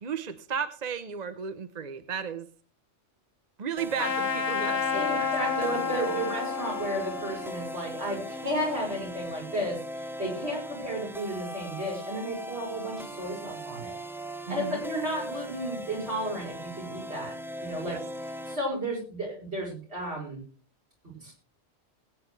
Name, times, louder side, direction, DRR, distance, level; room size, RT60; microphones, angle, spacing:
voice 1, 0.0-2.5 3.6-5.3 5.6-6.2 14.5-14.8 17.8-18.0, right 7 dB, 40° right, 10 dB, 0.8 m, -34 dB
sound 1, 3.8-18.6, equal, ahead, 0.7 m, -39 dB
Trumpet, 4.0-9.0, left 6 dB, 60° left, 1.2 m, -31 dB
voice 2, 4.9-13.9 14.5-17.3 17.6-18.0 18.5-20.4 21.2-21.3, right 1 dB, 70° right, -2 dB, 6.3 m, -33 dB
20.5 x 9.2 x 3.3 m, 0.40 s
omnidirectional pair, 1.2 m